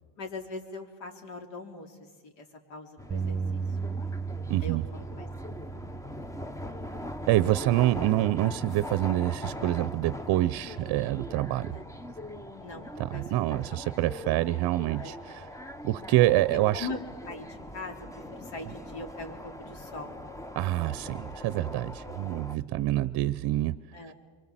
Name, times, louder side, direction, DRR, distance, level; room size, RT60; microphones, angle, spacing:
voice 1, 0.2-2.0 2.2-3.6 4.6-5.5 11.7-11.8 12.6-12.8 13.1-13.9 14.2-14.4 14.9-15.1 16.7-20.2 22.6-22.8 23.9-24.1, left 3 dB, 65° left, 3 dB, 4.1 m, -42 dB
sound 1, 3.0-22.6, left 1 dB, 5° left, 0.8 m, -41 dB
Bass guitar, 3.1-7.6 8.2-9.3, right 5 dB, 20° right, 1.1 m, -37 dB
voice 2, 4.5-4.8 7.3-11.8 13.0-15.5 15.8-16.9 20.6-23.8 24.1-24.2, right 15 dB, 50° right, 16 dB, 0.7 m, -26 dB
25.5 x 23.5 x 7.6 m, 1.4 s
supercardioid pair, 100°, 48 cm